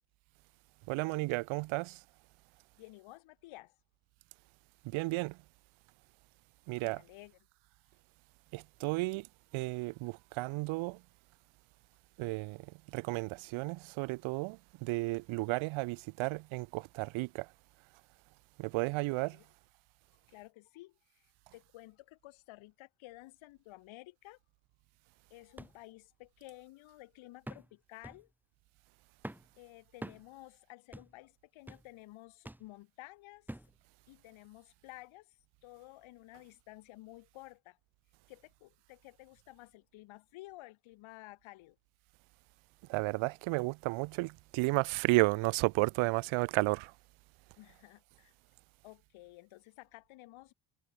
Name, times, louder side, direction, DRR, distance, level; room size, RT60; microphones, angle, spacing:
voice 1, 0.9-2.0 4.8-5.4 6.7-7.0 8.5-9.3 9.5-11.0 12.2-12.6 12.9-17.5 18.6-19.4 42.9-46.9, right 23 dB, 80° right, 1.1 m, -33 dB
voice 2, 2.8-3.8 6.8-7.4 18.9-19.5 20.3-21.3 21.5-24.4 25.3-28.3 29.6-33.5 34.1-35.4 35.6-37.8 38.3-41.8 47.6-48.3 48.8-50.5, left 19 dB, 75° left, 6.5 m, -53 dB
sound 1, 25.6-25.8 26.2-26.3 27.5-27.7 28.0-28.3 29.2-29.5 30.0-30.3 30.9-31.2 31.7-31.9 32.5-32.7 33.5-33.8 34.4-34.5, right 1 dB, 5° right, 3.5 m, -46 dB
cardioid pair, 100°, 48 cm